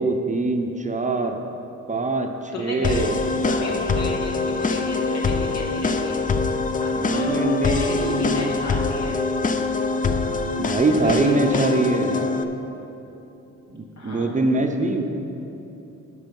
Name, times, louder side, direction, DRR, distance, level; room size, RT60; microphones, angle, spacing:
voice 1, 0.0-1.4 1.9-3.3 6.9-8.6 10.6-12.3 13.7-15.0, right 2 dB, 25° right, 4 dB, 0.7 m, -23 dB
voice 2, 2.5-3.0 3.4-6.2 6.8-7.3 7.6-9.2 10.8-11.7 14.0-14.3, left 2 dB, 65° left, -2 dB, 2.2 m, -33 dB
sound 1, 2.8-12.4, left 3 dB, 30° left, 0.5 m, -24 dB
11.5 x 6.2 x 5.3 m, 3.0 s
cardioid pair, 115°, 29 cm